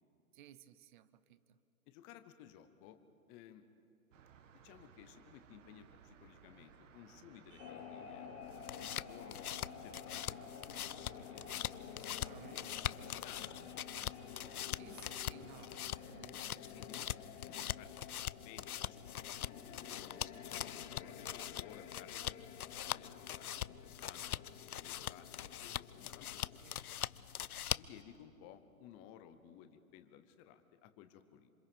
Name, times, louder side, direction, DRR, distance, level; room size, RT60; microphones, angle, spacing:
voice 1, 0.3-1.6 12.0-13.0 14.8-17.1 23.4-23.8 26.6-26.8, right 12 dB, 35° right, 16 dB, 0.8 m, -59 dB
voice 2, 1.9-3.0 3.3-3.7 4.5-9.5 9.8-11.4 11.8-12.3 13.0-14.3 16.7-17.1 17.4-20.2 20.5-27.0 27.7-31.5, left 10 dB, 10° left, 10 dB, 0.4 m, -58 dB
sound 1, 4.1-16.2, right 7 dB, 60° right, 1.4 m, -61 dB
sound 2, 7.6-26.6, left 7 dB, 35° left, 2.3 m, -52 dB
sound 3, 8.4-28.0, left 10 dB, 80° left, 0.6 m, -43 dB
27.0 x 25.5 x 5.2 m, 2.9 s
hypercardioid pair, 125°, 44 cm